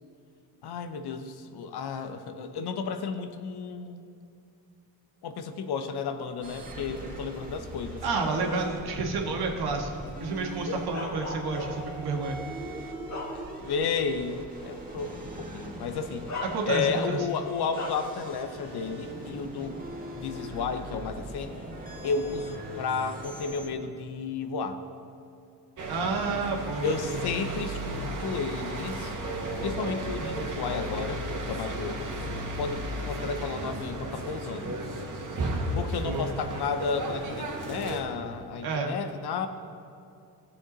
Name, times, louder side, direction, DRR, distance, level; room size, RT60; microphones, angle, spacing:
voice 1, 0.6-4.0 5.2-8.0 9.0-9.1 10.7-10.8 13.3-16.3 16.6-19.8 20.2-21.5 22.0-24.8 26.8-29.1 29.6-31.2 31.5-32.1 32.6-34.8 35.7-39.5, left 5 dB, 75° left, 8 dB, 0.9 m, -32 dB
sound 1, 6.4-23.7, right 2 dB, 20° right, 2.1 m, -41 dB
voice 2, 8.0-9.9 10.2-12.4 16.4-17.3 25.9-27.3 34.6-34.7 36.0-36.3 38.6-39.0, right 3 dB, 70° right, 1 dB, 1.7 m, -30 dB
Bark, 10.9-12.0 12.6-13.8 14.3-14.4 15.6-15.7 16.3-17.1 17.7-18.2, left 2 dB, 45° left, 1.7 m, -37 dB
sound 2, 25.8-38.0, right 1 dB, 50° right, 1.8 m, -34 dB
17.0 x 7.1 x 4.0 m, 2.5 s
cardioid pair, 85°, 39 cm